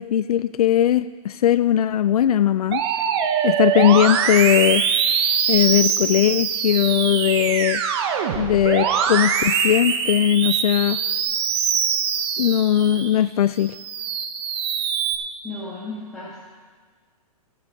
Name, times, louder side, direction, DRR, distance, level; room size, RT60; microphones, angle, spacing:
voice 1, 0.0-2.8 3.4-4.8 5.5-7.8 8.4-11.0 12.4-13.7, left 10 dB, 75° left, 14 dB, 0.4 m, -19 dB
Musical instrument, 2.7-13.1 13.6-15.2, right 7 dB, 45° right, 1.0 m, -23 dB
voice 2, 15.4-16.4, left 3 dB, 5° left, -9 dB, 1.8 m, -34 dB
21.5 x 7.8 x 3.6 m, 1.5 s
hypercardioid pair, 155°, 19 cm